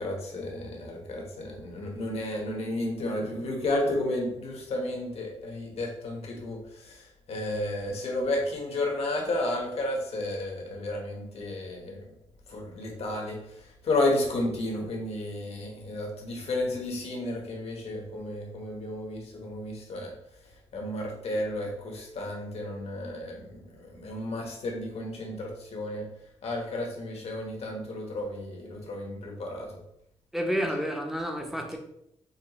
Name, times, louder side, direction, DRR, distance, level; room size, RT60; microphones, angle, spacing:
voice 1, 0.0-12.1 12.5-20.1 20.7-26.1 26.4-29.7, left 1 dB, 65° left, 0 dB, 1.2 m, -32 dB
voice 2, 30.3-31.8, equal, 5° right, 2 dB, 0.7 m, -30 dB
5.4 x 2.1 x 3.0 m, 0.77 s
cardioid pair, 80°, 12 cm